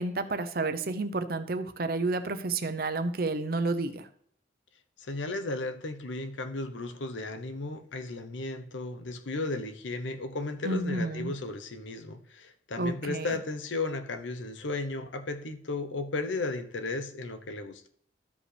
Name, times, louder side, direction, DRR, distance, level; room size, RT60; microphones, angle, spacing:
voice 1, 0.0-4.1 10.6-11.3 12.8-13.3, right 2 dB, 50° right, 0.7 m, -30 dB
voice 2, 5.0-17.9, left 2 dB, 90° left, 0.9 m, -35 dB
13.5 x 5.1 x 3.3 m
head